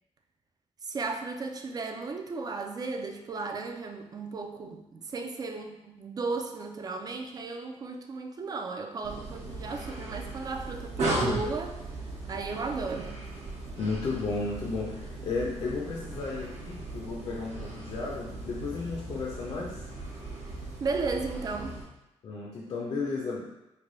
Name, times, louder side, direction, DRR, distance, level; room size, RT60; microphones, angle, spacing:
voice 1, 0.8-11.8 12.3-13.1 20.8-21.8, right 4 dB, 35° right, 5 dB, 0.3 m, -35 dB
sound 1, 9.0-21.8, right 2 dB, 70° right, 0.9 m, -37 dB
voice 2, 13.8-19.8 22.2-23.5, left 4 dB, 50° left, -3 dB, 0.5 m, -33 dB
3.2 x 2.2 x 3.8 m, 0.94 s
cardioid pair, 130°, 12 cm